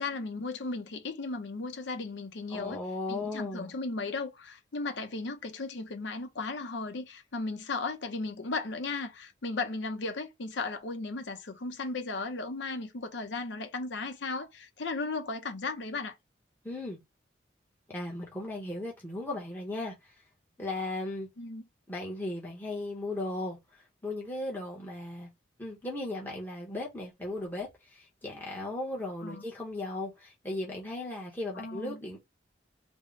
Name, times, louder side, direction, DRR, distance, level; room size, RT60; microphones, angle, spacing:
voice 1, 0.0-2.8 3.1-16.1 21.4-21.6 29.2-29.4 31.5-32.0, left 3 dB, 75° left, 0.7 m, -36 dB
voice 2, 2.5-3.7 16.6-17.0 17.9-20.1 20.6-21.3 21.9-23.6 24.0-25.3 25.6-32.2, left 2 dB, 10° left, 0.8 m, -36 dB
3.5 x 2.1 x 3.6 m
head